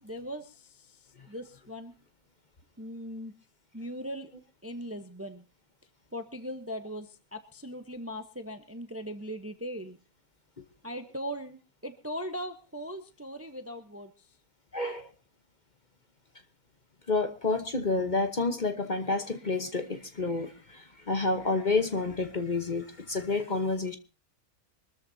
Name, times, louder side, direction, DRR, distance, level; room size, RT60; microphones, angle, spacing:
voice 1, 0.0-1.9 2.8-3.3 3.7-4.3 4.6-5.4 6.1-10.0 10.8-14.3, equal, 10° right, 8 dB, 0.7 m, -39 dB
voice 2, 14.7-15.1 17.1-24.0, left 3 dB, 35° left, 7 dB, 1.1 m, -29 dB
24.5 x 13.5 x 2.8 m, 0.31 s
omnidirectional pair, 1.5 m